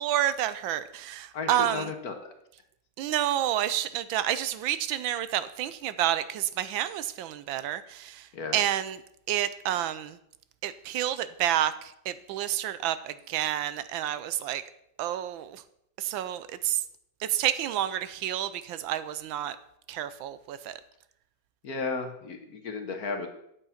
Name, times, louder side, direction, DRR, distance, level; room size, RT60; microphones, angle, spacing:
voice 1, 0.0-1.9 3.0-8.3 8.5-9.0 9.3-10.2 10.6-14.6 15.0-15.6 16.0-16.8 17.2-19.6 19.9-20.8, right 12 dB, 80° right, 14 dB, 1.3 m, -29 dB
voice 2, 1.3-2.3 8.3-8.6 21.6-23.3, left 4 dB, 55° left, 5 dB, 1.5 m, -34 dB
8.5 x 8.1 x 5.7 m, 0.77 s
omnidirectional pair, 2.2 m